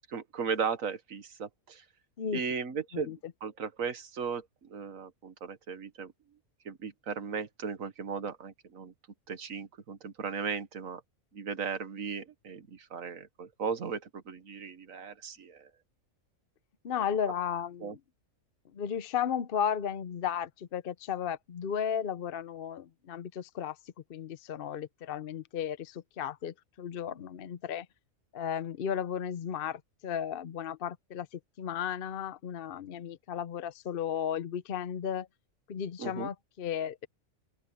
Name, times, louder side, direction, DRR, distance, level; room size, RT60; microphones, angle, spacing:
voice 1, 0.1-1.8 2.3-3.1 3.4-6.1 6.6-8.9 9.3-11.0 11.3-15.7 17.8-17.9 36.0-36.3, right 6 dB, 85° right, 1.8 m, -36 dB
voice 2, 2.9-3.3 16.8-18.0 18.7-23.8 24.1-27.9 28.3-35.3 35.7-37.1, left 8 dB, 50° left, 0.8 m, -34 dB
open air
omnidirectional pair, 1.4 m